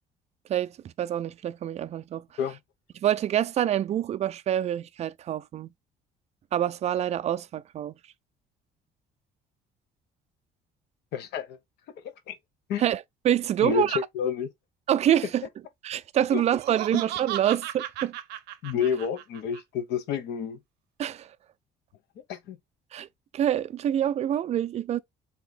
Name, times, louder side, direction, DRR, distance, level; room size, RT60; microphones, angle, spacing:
voice 1, 1.0-2.2 3.0-5.7 6.5-7.9 12.8-14.0 14.9-15.4 15.8-18.1 21.0-21.3 22.9-23.1 23.3-25.0, right 10 dB, 40° right, 0.4 m, -26 dB
voice 2, 11.1-11.6 12.0-12.4 12.7-12.8 13.6-14.5 16.3-16.4 16.9-17.0 18.6-20.6 22.3-22.6, left 8 dB, 75° left, 0.9 m, -29 dB
Laughter, 16.3-19.6, right 13 dB, 85° right, 0.6 m, -36 dB
3.5 x 2.8 x 3.9 m
cardioid pair, 110°, 17 cm